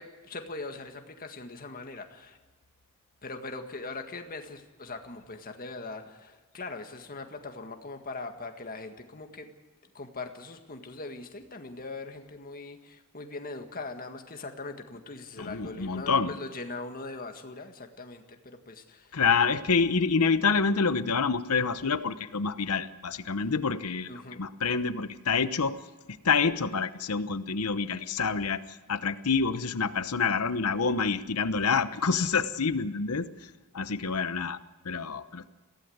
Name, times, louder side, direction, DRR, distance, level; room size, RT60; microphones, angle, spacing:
voice 1, 0.0-2.4 3.2-9.5 9.9-19.2 24.1-24.4, left 3 dB, 40° left, 5 dB, 1.9 m, -41 dB
voice 2, 15.4-16.3 19.1-25.8 26.2-34.6 34.8-35.5, left 5 dB, 90° left, 13 dB, 1.0 m, -27 dB
22.0 x 16.5 x 8.0 m, 1.2 s
head